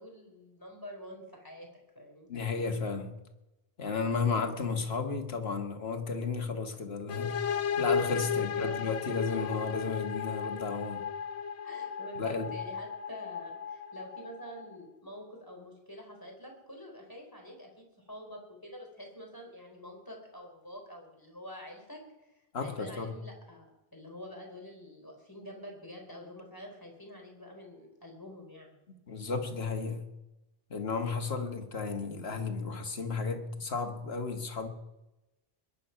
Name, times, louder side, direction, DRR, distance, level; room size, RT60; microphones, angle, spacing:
voice 1, 0.0-2.3 8.2-8.8 9.0-9.8 11.6-28.8, left 1 dB, 20° left, 4.0 m, -47 dB
voice 2, 2.3-3.2 3.8-11.0 12.2-12.5 22.5-23.1 29.1-30.1 30.7-34.7, left 4 dB, 70° left, 1.8 m, -33 dB
sound 1, 7.1-14.8, left 7 dB, 90° left, 1.0 m, -35 dB
21.5 x 10.0 x 5.7 m
omnidirectional pair, 1.1 m